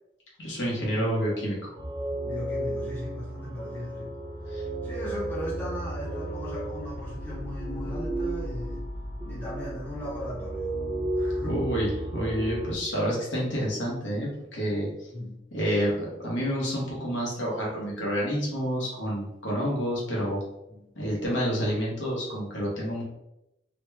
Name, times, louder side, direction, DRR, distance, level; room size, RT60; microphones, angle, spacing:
voice 1, 0.4-1.7 4.5-4.6 11.4-14.9 15.5-20.4 20.9-23.0, equal, 65° left, -4 dB, 1.1 m, -29 dB
sound 1, 1.7-12.7, right 1 dB, 20° right, 0.8 m, -33 dB
voice 2, 2.2-4.1 4.8-8.8 9.2-10.7 11.1-11.6 15.1-15.4 20.7-20.8, equal, 10° left, -8 dB, 0.8 m, -37 dB
3.0 x 2.2 x 3.2 m, 0.89 s
head